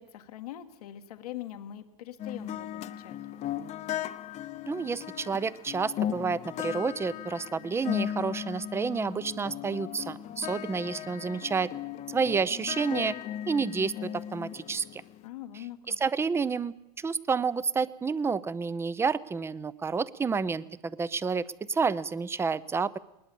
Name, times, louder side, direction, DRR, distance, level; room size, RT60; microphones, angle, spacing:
voice 1, 0.0-3.2 15.2-16.0, left 12 dB, 85° left, 8 dB, 1.5 m, -42 dB
sound 1, 2.2-15.2, left 10 dB, 35° left, 0.8 m, -37 dB
voice 2, 4.7-11.7 12.1-13.1 13.5-15.0 15.9-23.0, right 5 dB, 15° right, 18 dB, 0.6 m, -30 dB
20.0 x 20.0 x 6.9 m, 0.93 s
supercardioid pair, 120°, 19 cm